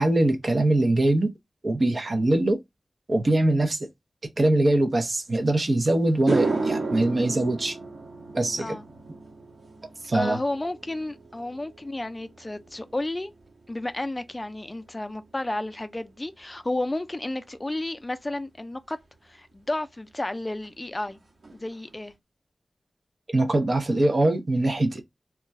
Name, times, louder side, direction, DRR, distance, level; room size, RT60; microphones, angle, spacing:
voice 1, 0.0-1.3 1.6-2.6 3.1-3.9 4.4-7.8 8.3-8.8 10.1-10.4 23.3-25.0, right 1 dB, 50° right, 0.6 m, -22 dB
sound 1, 5.5-5.6 6.1-14.6 14.9-15.3 18.9-19.0 20.6-20.7 21.0-21.2 21.4-22.0, right 3 dB, 75° right, 1.2 m, -33 dB
voice 2, 10.1-13.3 13.7-19.0 19.2-21.2 21.5-22.1, left 2 dB, 25° left, 0.3 m, -32 dB
2.3 x 2.2 x 3.9 m
wide cardioid pair, 65°, 0 cm